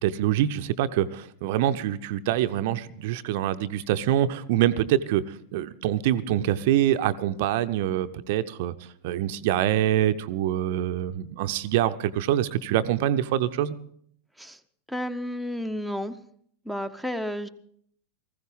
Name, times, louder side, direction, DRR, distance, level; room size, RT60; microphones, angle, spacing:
voice 1, 0.0-8.7 9.0-13.8, right 12 dB, 50° right, 0.6 m, -25 dB
voice 2, 14.9-16.2 16.7-17.5, left 1 dB, ahead, 0.7 m, -31 dB
19.0 x 15.0 x 3.6 m
figure-of-eight pair, 90°, 0 cm